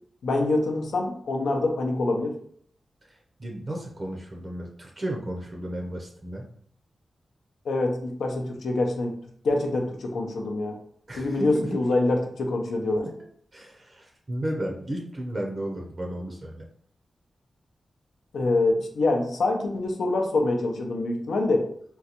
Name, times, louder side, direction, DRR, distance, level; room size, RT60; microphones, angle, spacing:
voice 1, 0.2-2.3 7.6-9.2 9.4-10.8 11.2-13.1 18.3-21.7, left 2 dB, 90° left, 2 dB, 0.6 m, -25 dB
voice 2, 3.4-6.5 11.1-11.7 13.0-13.1 13.5-16.6, right 1 dB, 30° right, 0 dB, 0.5 m, -33 dB
3.8 x 2.2 x 2.8 m, 0.62 s
wide cardioid pair, 120°, 0 cm